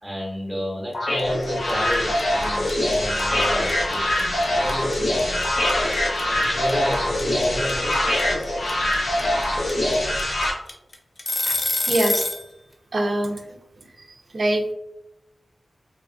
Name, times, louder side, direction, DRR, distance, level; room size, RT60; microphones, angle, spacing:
voice 1, 0.0-5.5 6.2-8.0, equal, 5° right, -4 dB, 1.0 m, -31 dB
sound 1, 0.9-10.5, left 1 dB, 70° left, 0.7 m, -23 dB
sound 2, 1.2-1.4 1.7-12.5, left 1 dB, 40° left, 0.4 m, -26 dB
voice 2, 11.9-12.3 12.9-13.6 14.3-14.7, right 1 dB, 50° right, 3 dB, 0.3 m, -23 dB
2.5 x 2.4 x 2.3 m, 0.86 s
wide cardioid pair, 120°, 0 cm